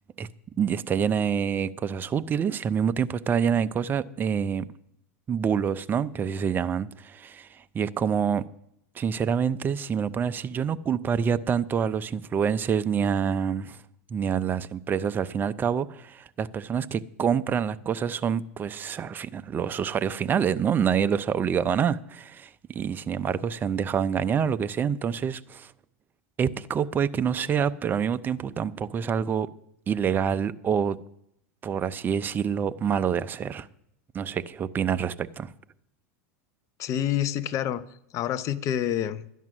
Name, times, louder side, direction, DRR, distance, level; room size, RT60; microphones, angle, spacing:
voice 1, 0.6-4.7 5.3-8.4 9.0-13.8 14.1-25.7 26.4-29.5 29.9-31.0 31.6-33.7 34.1-35.5, right 7 dB, 25° right, 0.5 m, -27 dB
voice 2, 36.8-37.8 38.1-39.2, left 10 dB, 40° left, 0.7 m, -27 dB
12.0 x 9.1 x 6.1 m
hypercardioid pair, 115°, 8 cm